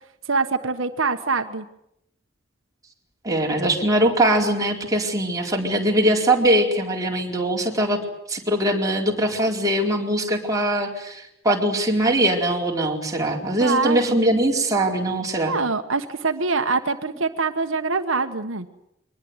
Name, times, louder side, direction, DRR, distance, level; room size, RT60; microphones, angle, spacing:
voice 1, 0.3-1.6 13.6-14.2 15.5-18.7, right 4 dB, 80° right, 7 dB, 1.4 m, -24 dB
voice 2, 3.2-8.0 8.3-15.5, right 1 dB, 20° right, 0 dB, 4.4 m, -21 dB
23.5 x 20.0 x 9.6 m, 0.79 s
head